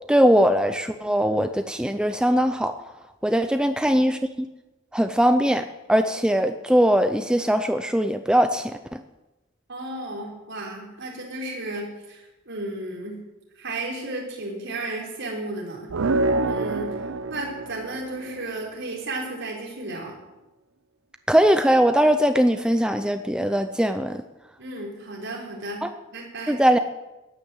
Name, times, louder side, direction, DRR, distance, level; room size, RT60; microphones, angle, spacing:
voice 1, 0.1-2.7 3.2-4.5 4.9-9.0 21.3-24.2 25.8-25.9 26.5-26.8, equal, 5° right, 8 dB, 0.6 m, -21 dB
voice 2, 9.7-13.2 13.6-17.0 17.3-20.2 24.6-26.6, right 2 dB, 65° right, -2 dB, 5.0 m, -34 dB
sound 1, 15.9-18.6, right 2 dB, 85° right, 0.6 m, -26 dB
13.5 x 9.8 x 8.1 m, 1.0 s
head